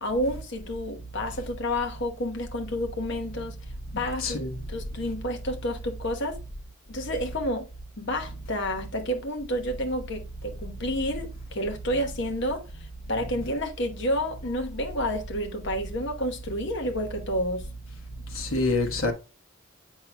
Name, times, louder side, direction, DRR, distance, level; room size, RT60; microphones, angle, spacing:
voice 1, 0.0-3.6 4.0-4.4 4.7-6.4 6.9-7.7 8.0-17.7, equal, 55° left, 1.1 m, -30 dB
voice 2, 4.2-4.6 18.3-19.1, left 2 dB, 75° left, 1.2 m, -26 dB
7.5 x 5.6 x 2.2 m
head